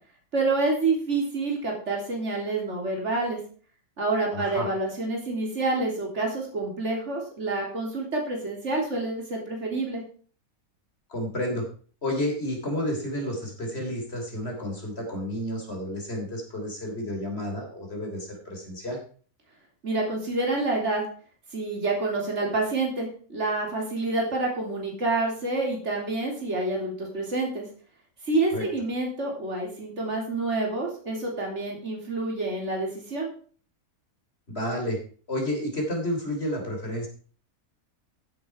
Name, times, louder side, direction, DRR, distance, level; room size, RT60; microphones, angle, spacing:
voice 1, 0.3-3.4 4.0-10.0 19.8-21.0 21.5-27.7 28.2-33.3, right 2 dB, 50° right, 0 dB, 3.6 m, -28 dB
voice 2, 4.3-4.7 11.1-11.7 12.0-19.0 28.5-28.7 34.5-35.0 35.3-37.1, left 1 dB, 45° left, 1 dB, 3.6 m, -31 dB
15.0 x 8.3 x 4.6 m, 0.43 s
omnidirectional pair, 1.5 m